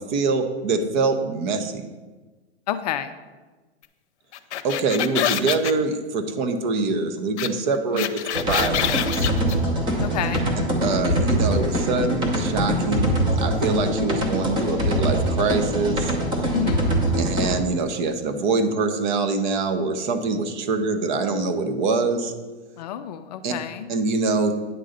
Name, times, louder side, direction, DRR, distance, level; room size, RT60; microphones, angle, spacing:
voice 1, 0.0-1.9 4.6-8.2 8.5-9.2 10.8-16.1 17.2-22.3 23.4-23.5 23.9-24.5, right 4 dB, 45° right, 7 dB, 0.9 m, -24 dB
voice 2, 2.7-3.1 7.9-8.1 10.0-10.5 16.5-17.0 22.8-23.9, left 10 dB, 40° left, 10 dB, 0.4 m, -29 dB
sound 1, 4.3-5.7 7.4-7.5 7.7-9.5, left 11 dB, 80° left, 0.7 m, -26 dB
sound 2, 8.3-17.6, equal, 15° right, 0.8 m, -23 dB
9.2 x 3.8 x 6.6 m, 1.3 s
hypercardioid pair, 150°, 34 cm